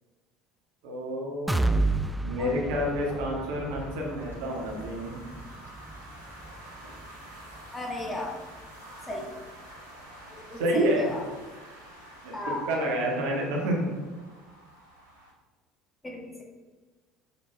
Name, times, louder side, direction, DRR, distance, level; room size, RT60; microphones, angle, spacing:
voice 1, 0.8-1.6 2.2-5.2 10.6-11.1 12.2-13.9, equal, 60° right, -1 dB, 1.9 m, -29 dB
sound 1, 1.5-9.3 9.7-9.8 10.2-10.3, right 2 dB, 5° right, 0.5 m, -33 dB
sound 2, 2.6-15.3, right 1 dB, 85° right, 1.8 m, -49 dB
voice 2, 7.7-8.4 9.1-9.3 10.3-11.2 12.3-12.7 16.0-16.4, left 1 dB, 15° left, -1 dB, 1.8 m, -35 dB
7.1 x 7.1 x 3.5 m, 1.3 s
figure-of-eight pair, 65°, 0 cm